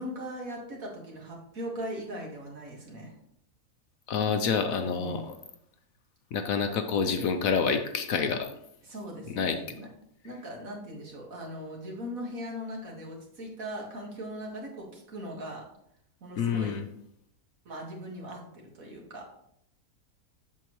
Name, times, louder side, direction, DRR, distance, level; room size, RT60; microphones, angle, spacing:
voice 1, 0.0-3.1 4.8-5.3 8.8-9.9 10.2-15.7 16.2-16.8 17.7-19.2, equal, 60° right, -1 dB, 2.2 m, -39 dB
voice 2, 4.1-5.3 6.3-8.5 9.3-9.6 16.4-16.8, left 6 dB, 70° left, 7 dB, 1.0 m, -27 dB
8.2 x 6.8 x 3.1 m, 0.73 s
omnidirectional pair, 1.7 m